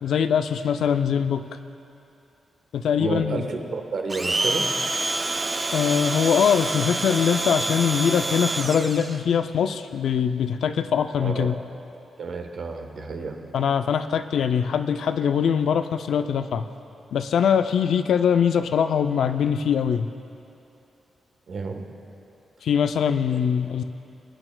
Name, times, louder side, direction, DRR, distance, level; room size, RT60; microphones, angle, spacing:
voice 1, 0.0-1.4 2.7-3.5 5.7-11.5 13.5-16.6 17.1-20.1 22.6-23.8, left 7 dB, 80° left, 9 dB, 0.4 m, -22 dB
voice 2, 3.0-4.7 11.2-11.6 12.2-13.4 21.5-21.9 23.3-23.4, right 4 dB, 65° right, 3 dB, 1.1 m, -30 dB
Domestic sounds home sounds, 4.1-9.2, right 2 dB, 25° right, 0.5 m, -27 dB
24.0 x 8.9 x 2.2 m, 2.7 s
cardioid pair, 75°, 0 cm